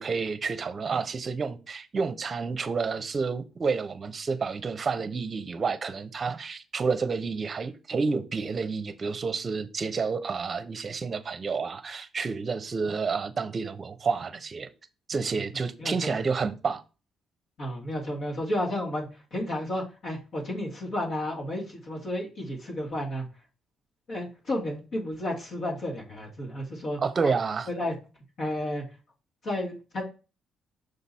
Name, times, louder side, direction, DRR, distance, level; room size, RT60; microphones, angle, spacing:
voice 1, 0.0-14.7 15.1-16.8 27.0-27.7, right 5 dB, 40° right, 0.8 m, -30 dB
voice 2, 15.8-16.2 17.6-23.3 24.1-27.4 27.7-27.9 28.4-28.8 29.4-30.0, left 1 dB, 60° left, 2.3 m, -32 dB
6.6 x 4.0 x 4.2 m
cardioid pair, 90°, 0 cm